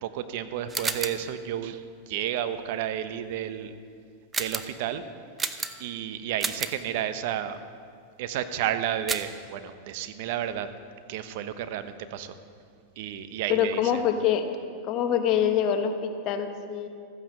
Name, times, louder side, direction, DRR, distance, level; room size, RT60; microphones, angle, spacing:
voice 1, 0.0-3.7 4.4-5.0 5.8-7.6 8.2-10.7 11.1-12.4 13.0-14.0, right 10 dB, 65° right, 11 dB, 0.9 m, -32 dB
sound 1, 0.7-1.3 4.3-4.8 5.4-6.0 6.4-6.8 9.1-9.4, right 4 dB, 15° right, 0.7 m, -31 dB
voice 2, 13.5-14.5 14.8-16.9, left 9 dB, 45° left, 6 dB, 1.3 m, -25 dB
14.0 x 9.6 x 6.6 m, 2.3 s
hypercardioid pair, 120°, 0 cm